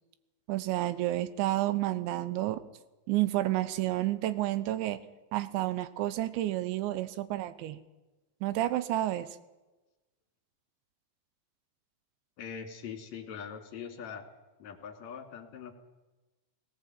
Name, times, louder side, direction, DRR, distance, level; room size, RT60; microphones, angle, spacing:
voice 1, 0.5-2.6 3.1-5.0 5.3-7.8 8.4-9.3, right 15 dB, 80° right, 15 dB, 3.2 m, -30 dB
voice 2, 12.4-14.2 14.6-15.7, left 7 dB, 45° left, 5 dB, 3.3 m, -42 dB
18.0 x 18.0 x 9.2 m, 1.1 s
omnidirectional pair, 5.2 m